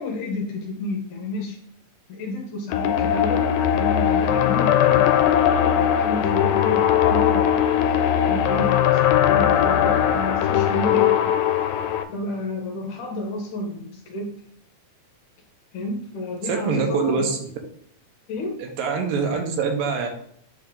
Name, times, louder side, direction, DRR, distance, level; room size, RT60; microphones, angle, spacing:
voice 1, 0.0-1.6 2.1-3.5 3.7-5.3 5.7-11.3 12.1-14.3 15.7-17.3 18.3-18.5, left 2 dB, 70° left, 1 dB, 2.4 m, -31 dB
sound 1, 2.7-12.0, left 9 dB, 90° left, 2.4 m, -19 dB
voice 2, 16.5-17.4 18.6-20.1, right 5 dB, 75° right, 3 dB, 2.5 m, -24 dB
9.1 x 3.6 x 3.7 m, 0.64 s
omnidirectional pair, 4.1 m